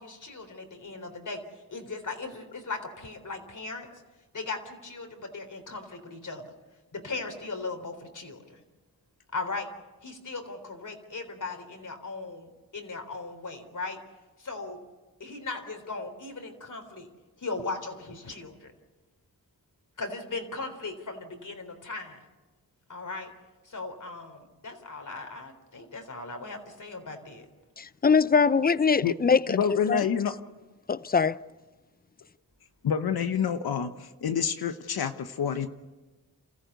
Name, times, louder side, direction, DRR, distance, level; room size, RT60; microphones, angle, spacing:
voice 1, 0.0-3.9 4.3-6.5 6.9-8.6 9.3-9.7 10.0-14.0 14.4-14.8 15.2-17.1 17.4-18.7 20.0-22.3 22.9-23.3 23.6-27.5, left 3 dB, 55° left, 3.8 m, -38 dB
voice 2, 27.8-30.0 30.9-31.4, left 5 dB, 25° left, 0.6 m, -23 dB
voice 3, 29.5-30.3 32.8-35.7, left 7 dB, 80° left, 1.1 m, -28 dB
28.0 x 14.5 x 8.2 m
cardioid pair, 55°, 37 cm